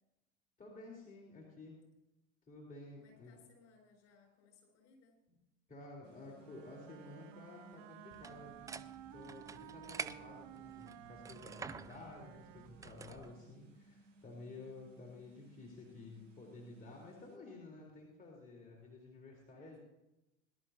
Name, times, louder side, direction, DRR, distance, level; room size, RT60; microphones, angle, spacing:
voice 1, 0.6-1.8 2.5-3.4 5.7-8.8 9.1-19.8, left 2 dB, 20° left, -3 dB, 3.9 m, -52 dB
voice 2, 3.0-5.2 19.5-19.8, left 4 dB, 45° left, 2 dB, 6.3 m, -65 dB
sound 1, 6.0-17.4, right 1 dB, 80° right, 2.0 m, -63 dB
Wind instrument woodwind instrument, 6.4-13.7, right 13 dB, 55° right, 0.8 m, -55 dB
sound 2, 8.1-13.3, right 5 dB, 10° right, 0.3 m, -49 dB
21.5 x 12.0 x 2.8 m, 0.95 s
figure-of-eight pair, 75°, 38 cm